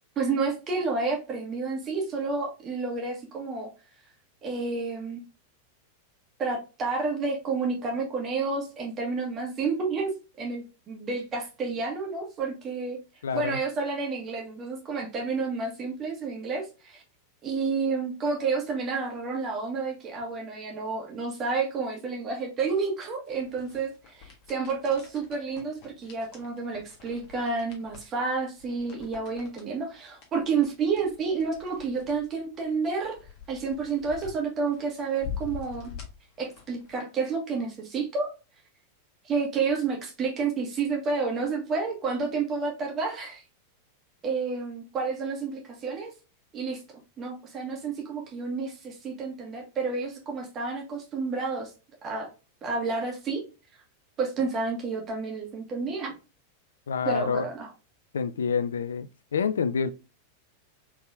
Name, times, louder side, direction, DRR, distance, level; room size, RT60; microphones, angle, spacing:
voice 1, 0.2-3.7 4.4-5.2 6.4-10.1 10.4-13.0 13.3-17.0 17.4-33.2 33.5-35.9 36.4-38.3 39.2-43.4 44.2-46.1 46.5-46.8 47.2-51.7 52.0-52.3 52.6-53.4 54.2-56.1 57.0-57.7, right 4 dB, 25° right, 1.4 m, -30 dB
voice 2, 13.2-13.6 56.9-57.4 58.1-59.9, left 6 dB, 65° left, 0.3 m, -27 dB
sound 1, 23.3-36.9, left 7 dB, 40° left, 1.4 m, -45 dB
4.2 x 3.5 x 2.5 m
figure-of-eight pair, 90°, 0 cm